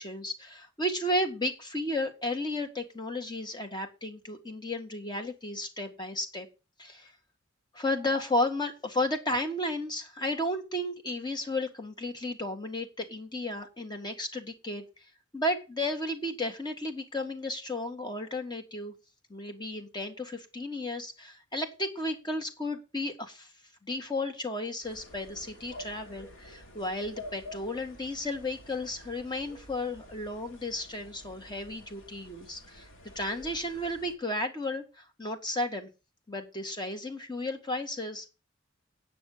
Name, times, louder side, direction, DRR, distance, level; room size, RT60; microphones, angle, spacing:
voice 1, 0.0-6.5 6.8-7.1 7.7-14.8 15.3-18.9 19.3-23.5 23.8-32.9 33.2-35.9 36.3-38.3, left 1 dB, 20° left, 5 dB, 1.9 m, -33 dB
sound 1, 24.8-34.2, left 1 dB, 85° left, 2.8 m, -49 dB
9.4 x 6.3 x 7.3 m, 0.30 s
head